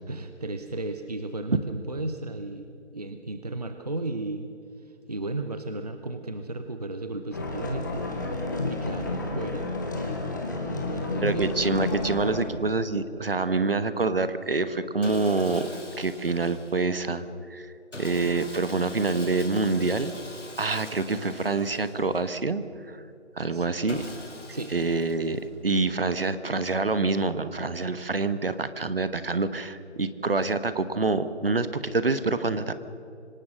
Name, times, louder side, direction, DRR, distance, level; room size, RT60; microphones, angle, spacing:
voice 1, 0.1-4.5 5.1-8.1 8.7-9.7 10.6-11.5 23.5-23.7 24.5-24.7, right 2 dB, 35° right, 8 dB, 0.9 m, -34 dB
sound 1, 7.3-12.4, left 2 dB, 15° left, 1.5 m, -31 dB
voice 2, 11.2-15.7 16.0-17.7 18.0-20.1 20.6-23.0 23.4-24.0 24.7-32.7, right 3 dB, 55° right, 12 dB, 1.2 m, -26 dB
Sawing, 15.0-17.1 17.9-22.5 23.9-25.7, left 2 dB, 85° left, 3.5 m, -43 dB
25.5 x 19.0 x 6.4 m, 2.7 s
figure-of-eight pair, 170°, 35 cm